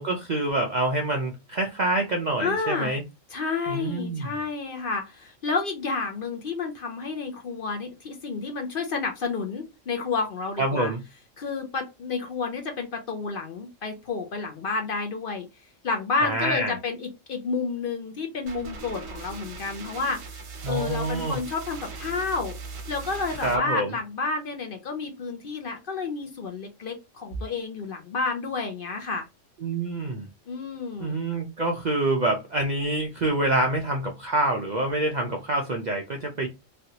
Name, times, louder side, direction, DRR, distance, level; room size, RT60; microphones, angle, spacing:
voice 1, 0.0-3.0 3.7-4.3 10.6-11.0 16.2-16.8 20.6-21.4 23.4-23.9 29.6-30.3 31.0-36.5, right 2 dB, 55° right, 2 dB, 0.5 m, -26 dB
voice 2, 2.4-2.9 3.3-10.9 11.4-15.5 15.8-20.4 20.7-22.6 22.9-29.3 30.5-31.2, left 4 dB, 55° left, 3 dB, 0.7 m, -30 dB
sound 1, 18.5-23.6, right 4 dB, 80° right, 1.2 m, -39 dB
3.2 x 2.5 x 2.8 m, 0.24 s
omnidirectional pair, 1.3 m